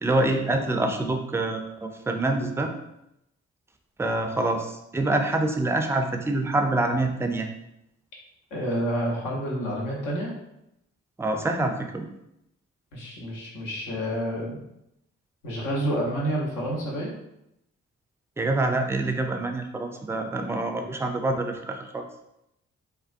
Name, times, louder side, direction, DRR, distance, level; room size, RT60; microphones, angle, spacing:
voice 1, 0.0-2.7 4.0-7.5 11.2-12.1 18.4-22.0, right 2 dB, 10° right, 4 dB, 0.3 m, -26 dB
voice 2, 8.5-10.3 12.9-14.6 15.4-17.1, equal, 80° left, -3 dB, 0.8 m, -29 dB
2.3 x 2.2 x 2.5 m, 0.83 s
supercardioid pair, 40°, 31 cm